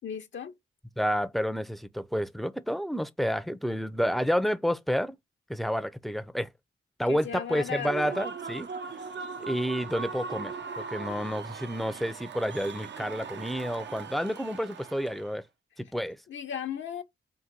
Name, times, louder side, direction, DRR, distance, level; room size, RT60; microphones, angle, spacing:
voice 1, 0.0-0.5 7.0-8.2 16.3-17.0, left 8 dB, 65° left, 0.7 m, -36 dB
voice 2, 1.0-5.2 5.5-6.5 7.0-8.7 9.4-15.4 15.8-16.2, equal, ahead, 0.5 m, -30 dB
Human voice / Cheering / Applause, 7.6-15.3, right 5 dB, 60° right, 0.6 m, -39 dB
3.7 x 2.6 x 4.4 m
cardioid pair, 55°, 21 cm